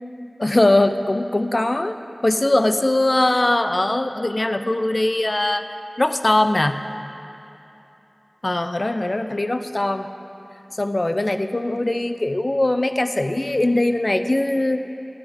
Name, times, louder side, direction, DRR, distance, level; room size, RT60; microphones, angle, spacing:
voice 1, 0.4-2.0 2.2-5.6 6.0-6.8 8.4-10.1 10.8-14.9, left 1 dB, 50° left, 9 dB, 0.6 m, -21 dB
12.5 x 6.1 x 9.0 m, 3.0 s
wide cardioid pair, 40°, 0 cm